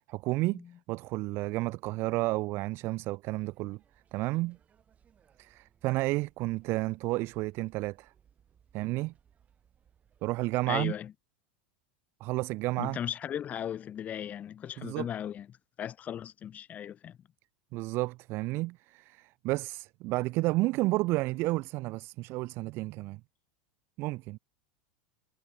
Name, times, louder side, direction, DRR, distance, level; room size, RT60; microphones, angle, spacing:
voice 1, 0.1-0.6 0.9-3.8 4.1-4.6 5.4-8.1 8.7-9.1 10.2-10.9 12.2-13.0 14.8-15.1 17.7-23.2 24.0-24.4, right 21 dB, 45° right, 0.4 m, -31 dB
sound 1, 3.3-10.6, right 8 dB, 25° right, 4.8 m, -66 dB
voice 2, 10.7-11.1 12.8-15.5 15.8-17.2, left 9 dB, 25° left, 0.7 m, -37 dB
supercardioid pair, 135°, 6 cm